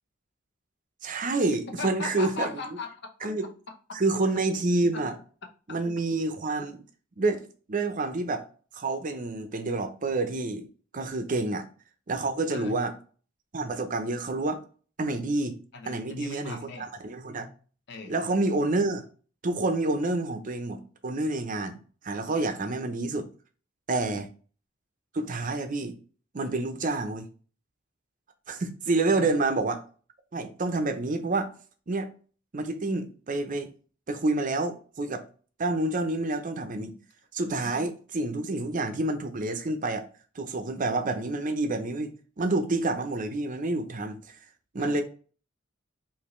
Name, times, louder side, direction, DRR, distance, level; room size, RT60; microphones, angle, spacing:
voice 1, 1.0-2.5 3.2-3.5 3.9-5.1 5.7-6.8 7.2-8.4 8.7-10.7 10.9-11.6 12.1-12.9 13.5-14.6 15.0-15.6 15.9-16.6 17.0-17.5 18.1-19.0 19.4-21.8 22.0-23.3 23.9-24.3 25.1-26.0 26.3-27.3 28.5-29.8 30.3-31.5 31.9-32.1 32.5-33.7 34.1-35.2 35.6-36.9 37.3-40.1 40.4-42.1 42.4-44.4 44.7-45.0, right 2 dB, 40° right, 0.6 m, -28 dB
voice 2, 1.7-3.3 3.7-4.0 4.9-5.0 11.3-11.4 12.5-12.8 15.7-16.9 17.9-18.2 22.4-22.6 23.9-24.2 29.1-29.4 36.7-37.0 37.6-37.7 44.8-45.0, left 4 dB, 60° left, 0.7 m, -39 dB
5.2 x 2.7 x 3.1 m
head